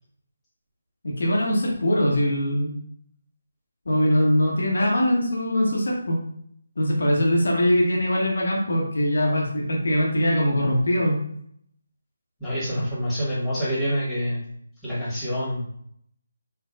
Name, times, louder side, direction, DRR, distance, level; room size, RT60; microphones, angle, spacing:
voice 1, 1.0-2.7 3.9-6.2 6.8-11.2, equal, 65° left, -1 dB, 0.9 m, -22 dB
voice 2, 12.4-14.4 14.8-15.7, equal, 5° left, -10 dB, 1.3 m, -26 dB
4.5 x 2.3 x 2.4 m, 0.68 s
figure-of-eight pair, 155°, 0 cm